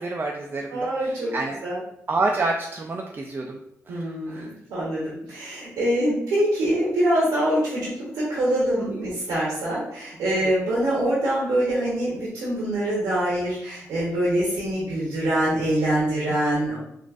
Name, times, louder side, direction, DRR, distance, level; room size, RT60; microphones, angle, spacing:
voice 1, 0.0-1.6 2.1-3.6 3.9-4.5 8.8-9.0 10.4-10.5, right 3 dB, 35° right, 1 dB, 0.4 m, -28 dB
voice 2, 0.7-1.3 1.6-1.8 3.9-4.4 4.7-7.9 8.1-16.8, right 1 dB, 90° right, -7 dB, 0.9 m, -24 dB
3.8 x 2.5 x 2.4 m, 0.75 s
cardioid pair, 60°, 6 cm